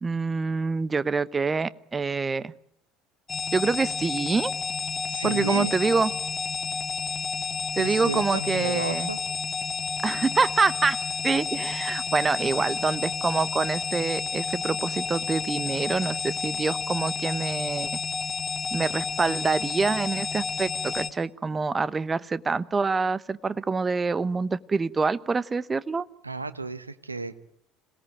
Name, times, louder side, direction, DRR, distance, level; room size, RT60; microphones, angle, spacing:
voice 1, 0.0-2.5 3.5-4.5 5.2-6.1 7.8-9.1 10.0-11.0 11.2-17.9 18.7-26.0, right 4 dB, 25° right, 17 dB, 1.0 m, -26 dB
sound 1, 3.3-21.1, left 5 dB, 25° left, 1.8 m, -31 dB
voice 2, 5.1-5.7 7.8-9.2 26.2-27.4, right 3 dB, 85° right, 13 dB, 1.0 m, -32 dB
27.0 x 18.5 x 9.2 m, 0.75 s
figure-of-eight pair, 60°, 0 cm